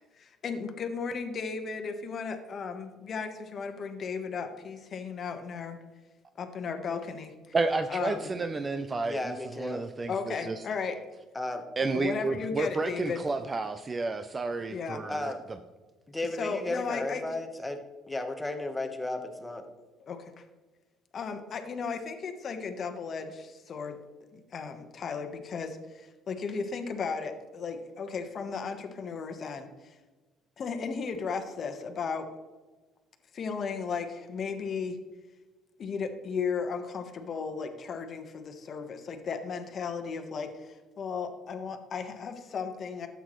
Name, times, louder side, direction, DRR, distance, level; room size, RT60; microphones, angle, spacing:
voice 1, 0.0-5.8 6.4-7.5 7.9-8.3 10.1-11.0 11.9-13.2 14.7-15.0 16.4-17.3 20.1-20.4 21.1-24.0 24.3-30.0 30.6-32.3 33.3-35.0 35.8-43.1, left 5 dB, 40° left, 6 dB, 1.1 m, -35 dB
voice 2, 7.5-10.6 11.8-15.3, right 3 dB, 20° right, 8 dB, 0.5 m, -31 dB
voice 3, 8.8-9.8 11.3-11.6 15.1-15.4 16.1-17.8 18.1-19.6, left 2 dB, 10° left, 5 dB, 1.1 m, -34 dB
12.5 x 8.2 x 3.1 m, 1.2 s
cardioid pair, 130°, 0 cm